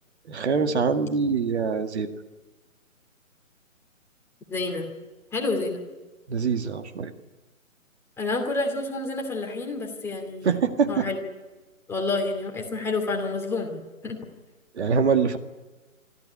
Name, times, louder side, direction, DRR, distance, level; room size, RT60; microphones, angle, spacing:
voice 1, 0.3-2.1 6.3-7.1 10.4-11.1 14.7-15.4, right 5 dB, 50° right, 7 dB, 2.0 m, -24 dB
voice 2, 4.5-4.9 5.3-5.8 8.2-10.6 10.9-11.2 11.9-14.2, left 3 dB, 5° left, 0 dB, 2.5 m, -29 dB
26.0 x 15.0 x 9.8 m, 1.2 s
figure-of-eight pair, 150°, 41 cm